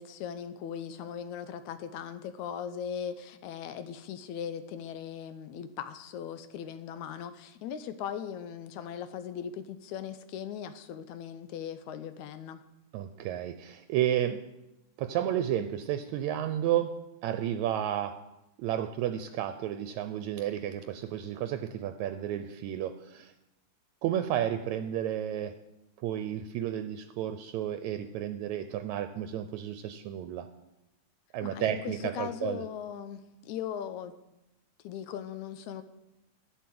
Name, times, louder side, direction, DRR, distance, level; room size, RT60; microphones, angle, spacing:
voice 1, 0.0-12.6 31.4-34.1 34.8-35.8, left 8 dB, 85° left, 11 dB, 2.1 m, -39 dB
voice 2, 12.9-14.4 15.0-16.9 17.2-18.2 18.6-23.3 24.0-25.5 26.0-30.5 31.3-32.6, right 11 dB, 80° right, 9 dB, 1.9 m, -32 dB
11.0 x 9.2 x 7.7 m, 0.93 s
omnidirectional pair, 3.4 m